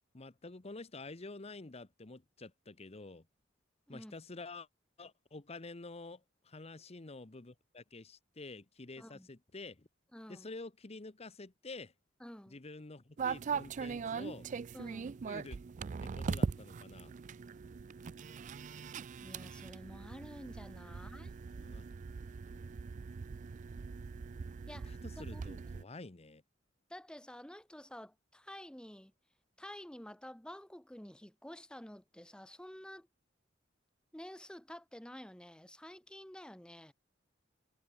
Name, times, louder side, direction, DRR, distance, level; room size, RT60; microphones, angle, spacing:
voice 1, 0.1-3.3 3.9-4.7 5.0-9.9 10.3-11.9 12.5-14.5 15.3-15.6 16.0-17.1 21.5-21.8 24.7-26.4, left 3 dB, 35° left, 1.0 m, -49 dB
voice 2, 9.0-9.3 10.1-10.5 12.2-12.6 14.7-15.2 19.2-21.3 24.7-25.4 26.9-29.1 29.6-33.1 34.1-36.9, left 1 dB, 5° left, 0.9 m, -50 dB
sound 1, 13.2-25.8, right 5 dB, 40° right, 0.4 m, -41 dB
head